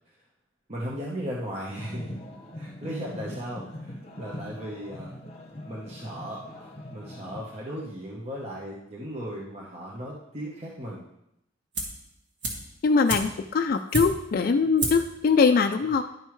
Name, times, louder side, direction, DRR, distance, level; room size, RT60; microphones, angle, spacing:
voice 1, 0.7-2.2 2.5-5.2 5.7-11.1, equal, 35° right, -4 dB, 0.9 m, -36 dB
sound 1, 1.7-7.4, left 1 dB, 30° left, 0.9 m, -42 dB
sound 2, 11.7-12.1 12.4-14.4 14.8-15.2 15.4-15.5, right 2 dB, 60° right, 1.5 m, -31 dB
voice 2, 12.8-16.0, left 4 dB, 45° left, 6 dB, 0.3 m, -22 dB
10.5 x 5.4 x 3.1 m, 0.80 s
head